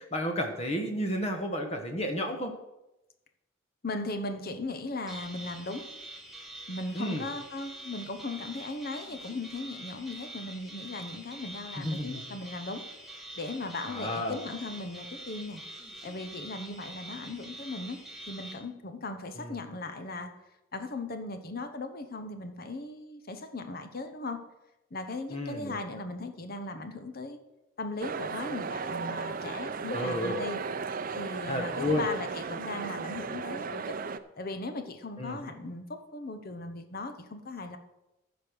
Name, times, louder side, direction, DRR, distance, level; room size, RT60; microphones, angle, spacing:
voice 1, 0.0-2.5 6.9-7.2 11.8-12.2 13.9-14.4 19.4-19.5 25.3-25.8 29.9-30.4 31.5-32.1 35.2-35.4, equal, 30° left, 5 dB, 1.1 m, -31 dB
voice 2, 3.8-5.9 6.7-12.9 13.4-15.6 16.0-18.0 18.3-20.3 20.7-24.4 24.9-27.4 27.8-30.6 31.1-34.0 34.4-37.8, left 2 dB, 50° left, 8 dB, 1.0 m, -38 dB
sound 1, 5.1-18.5, right 1 dB, ahead, 1.6 m, -45 dB
sound 2, 28.0-34.2, right 5 dB, 45° right, 0.5 m, -35 dB
14.5 x 5.2 x 6.2 m, 0.96 s
head